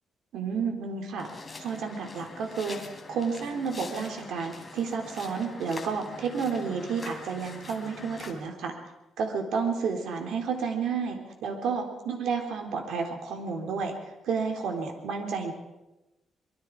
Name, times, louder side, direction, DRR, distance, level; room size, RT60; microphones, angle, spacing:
voice 1, 0.3-1.3 1.6-2.8 3.1-8.7 9.2-13.9 14.2-15.5, right 5 dB, 80° right, 3 dB, 3.8 m, -31 dB
sound 1, 1.2-8.3, left 3 dB, 20° left, 3.3 m, -44 dB
25.0 x 23.0 x 4.9 m, 1.0 s
cardioid pair, 140°, 0 cm